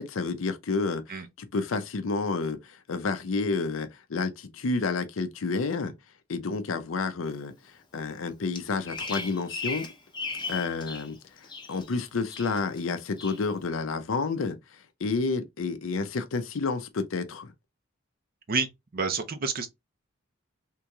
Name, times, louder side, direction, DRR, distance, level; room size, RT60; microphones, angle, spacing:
voice 1, 0.0-5.9 6.3-9.9 10.5-14.6 15.0-17.5, left 4 dB, 75° left, 0.5 m, -30 dB
Bird vocalization bird call bird song, 8.6-11.1 11.4-12.0 12.3-12.8 13.2-13.4, left 4 dB, 20° left, 0.7 m, -36 dB
voice 2, 18.9-19.7, right 5 dB, 45° right, 0.5 m, -28 dB
3.7 x 2.9 x 2.2 m
head